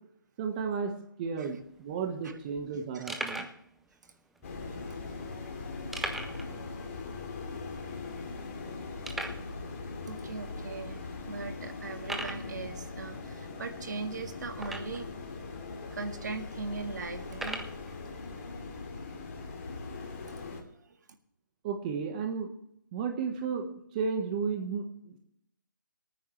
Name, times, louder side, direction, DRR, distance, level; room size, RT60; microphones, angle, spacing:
voice 1, 0.4-3.5 21.6-22.5 22.9-25.2, right 5 dB, 25° right, 4 dB, 1.3 m, -33 dB
sound 1, 1.6-1.7 1.9-2.0 2.6-2.7 3.1-3.6 4.4-4.5 5.9-6.5 6.8-6.9 7.3-7.4 8.0-8.1 9.0-9.5 10.3-10.4 11.0-11.1 12.0-12.5 14.6-15.1 15.9-16.0 17.3-17.8, right 2 dB, ahead, 0.4 m, -37 dB
sound 2, 4.4-20.6, left 3 dB, 40° left, 2.6 m, -40 dB
voice 2, 10.0-15.1 15.9-17.7 20.0-20.5 20.7-21.0, right 4 dB, 60° right, 6 dB, 1.7 m, -40 dB
23.5 x 9.4 x 3.2 m, 0.73 s
hypercardioid pair, 160°, 11 cm